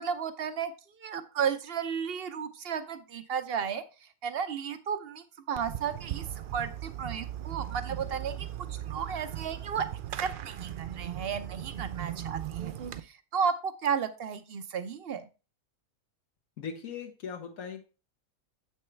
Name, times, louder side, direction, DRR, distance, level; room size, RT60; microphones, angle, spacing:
voice 1, 0.0-3.8 4.2-9.9 10.2-15.3, right 7 dB, 50° right, 11 dB, 0.8 m, -33 dB
Fireworks, 5.5-13.0, right 11 dB, 85° right, 0.4 m, -38 dB
voice 2, 16.6-17.8, left 6 dB, 75° left, 1 dB, 1.5 m, -39 dB
7.8 x 6.2 x 3.3 m, 0.31 s
omnidirectional pair, 1.5 m